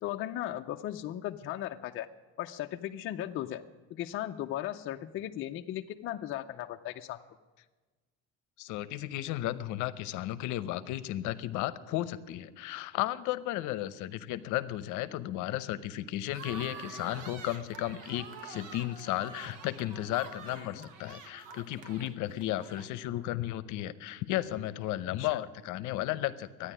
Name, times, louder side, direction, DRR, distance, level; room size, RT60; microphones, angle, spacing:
voice 1, 0.0-2.1 2.4-3.6 3.9-7.2 20.5-20.9 25.2-25.4, left 13 dB, 40° left, 5 dB, 0.5 m, -37 dB
voice 2, 8.6-26.7, left 14 dB, 65° left, 14 dB, 0.8 m, -34 dB
sound 1, 16.3-23.2, right 5 dB, 65° right, 1.2 m, -47 dB
13.0 x 9.9 x 9.9 m, 1.3 s
cardioid pair, 160°, 32 cm